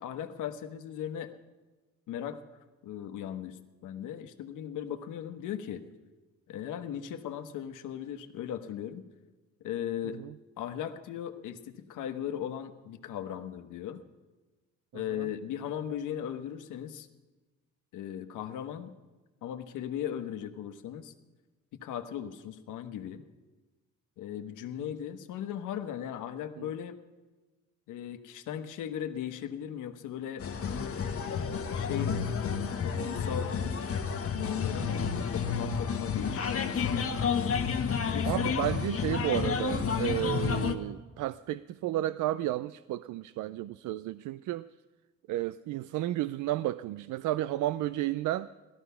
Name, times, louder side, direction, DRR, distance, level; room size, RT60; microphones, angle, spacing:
voice 1, 0.0-1.3 2.1-2.4 2.8-5.8 6.5-9.0 9.6-10.2 10.6-14.0 14.9-17.1 17.9-18.9 19.4-21.1 21.7-23.2 24.2-27.0 27.9-30.9 31.7-33.5 34.3-37.1 38.0-38.5, left 10 dB, 90° left, 1.2 m, -37 dB
voice 2, 14.9-15.3 26.6-26.7 38.3-44.7 45.3-48.5, right 14 dB, 80° right, 0.5 m, -32 dB
sound 1, 30.4-40.7, left 6 dB, 50° left, 1.3 m, -30 dB
17.5 x 13.5 x 5.7 m
cardioid pair, 90°, 30 cm